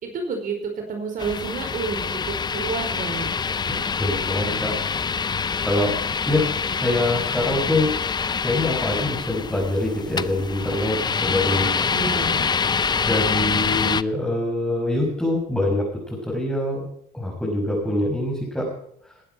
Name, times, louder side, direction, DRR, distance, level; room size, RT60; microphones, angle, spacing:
voice 1, 0.0-0.6 0.9-2.0 2.3-3.3 11.9-12.5, right 4 dB, 55° right, 3 dB, 4.8 m, -29 dB
sound 1, 1.2-14.0, left 5 dB, 25° left, 0.6 m, -25 dB
voice 2, 3.7-4.8 5.6-6.0 6.2-6.5 6.8-8.0 8.4-12.0 13.1-16.8 17.1-18.7, left 1 dB, 5° left, -4 dB, 6.2 m, -24 dB
20.0 x 10.0 x 4.7 m, 0.72 s
cardioid pair, 110°, 17 cm